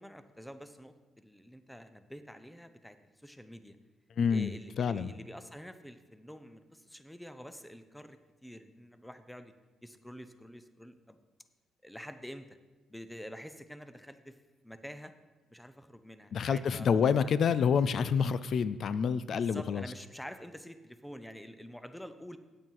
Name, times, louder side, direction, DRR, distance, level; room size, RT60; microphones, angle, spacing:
voice 1, 0.0-3.8 4.3-9.5 9.8-11.2 11.8-12.6 12.9-14.4 14.6-15.1 15.5-16.9 17.2-17.3 19.3-22.4, equal, 5° left, 10 dB, 0.7 m, -48 dB
voice 2, 4.2-5.1 16.3-19.8, left 6 dB, 60° left, 15 dB, 0.3 m, -28 dB
8.9 x 8.5 x 4.6 m, 1.3 s
cardioid pair, 90°, 0 cm